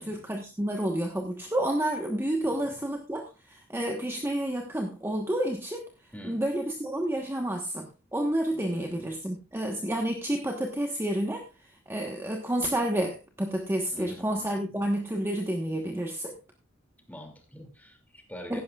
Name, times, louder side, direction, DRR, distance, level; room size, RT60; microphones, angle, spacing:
voice 1, 0.0-5.9 6.2-11.4 11.9-16.4 18.5-18.6, right 1 dB, 10° right, 2 dB, 1.2 m, -30 dB
voice 2, 2.4-2.8 6.1-6.4 8.5-9.1 13.9-14.7 17.1-18.6, equal, 10° left, 3 dB, 2.6 m, -46 dB
16.0 x 11.5 x 2.4 m, 0.30 s
head